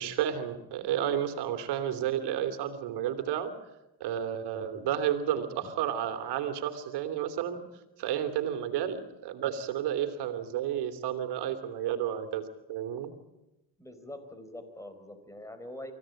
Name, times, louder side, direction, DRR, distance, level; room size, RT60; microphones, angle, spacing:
voice 1, 0.0-3.5 4.0-7.6 8.0-13.1, right 10 dB, 70° right, 8 dB, 3.0 m, -31 dB
voice 2, 13.8-15.9, left 1 dB, 5° left, 9 dB, 4.3 m, -44 dB
24.5 x 16.0 x 9.0 m, 0.95 s
supercardioid pair, 95°, 41 cm